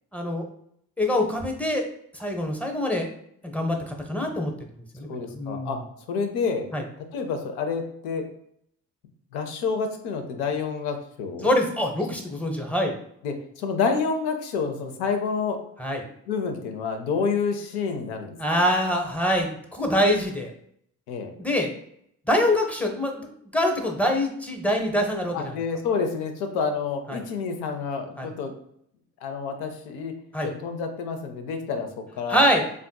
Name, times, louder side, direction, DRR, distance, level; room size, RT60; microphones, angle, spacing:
voice 1, 0.1-0.4 1.0-1.8 2.1-3.1 3.4-4.5 4.9-5.8 6.7-6.8 11.4-12.9 15.8-16.0 18.4-20.5 21.4-21.7 22.3-23.3 23.5-25.6 27.1-27.2 28.2-28.3 30.3-30.5 32.3-32.6, left 1 dB, 5° left, 2 dB, 0.6 m, -24 dB
voice 2, 5.1-5.8 6.1-6.7 7.1-8.3 9.3-11.5 13.2-15.6 16.3-18.6 21.1-21.3 25.3-28.5 29.2-30.1 30.4-32.5, left 5 dB, 85° left, 5 dB, 0.6 m, -28 dB
3.5 x 2.5 x 2.2 m, 0.70 s
hypercardioid pair, 50°, 38 cm